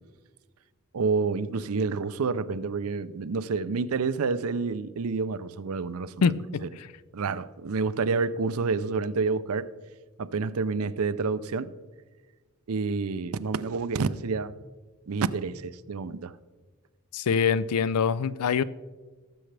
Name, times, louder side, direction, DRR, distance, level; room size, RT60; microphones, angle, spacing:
voice 1, 0.9-6.3 7.1-9.7 10.2-11.7 12.7-14.5 15.1-16.4, right 4 dB, 75° right, 0.5 m, -28 dB
voice 2, 6.2-6.9 17.1-18.6, left 6 dB, 85° left, 0.4 m, -25 dB
18.5 x 7.8 x 3.4 m
head